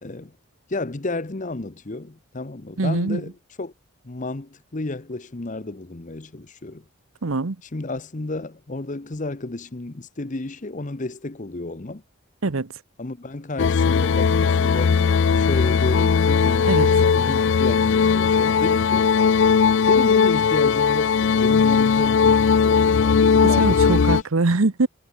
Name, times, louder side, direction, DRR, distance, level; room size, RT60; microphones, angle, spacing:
voice 1, 0.0-0.3 0.7-3.3 3.6-3.7 4.0-6.8 7.7-12.0 13.0-15.0 15.4-19.1 19.9-24.2, left 2 dB, 35° left, 0.9 m, -32 dB
voice 2, 2.8-3.2 7.2-7.6 12.4-12.7 16.7-16.9 23.4-24.9, right 3 dB, 80° right, 0.9 m, -22 dB
sound 1, 13.6-24.2, left 6 dB, 60° left, 0.4 m, -18 dB
head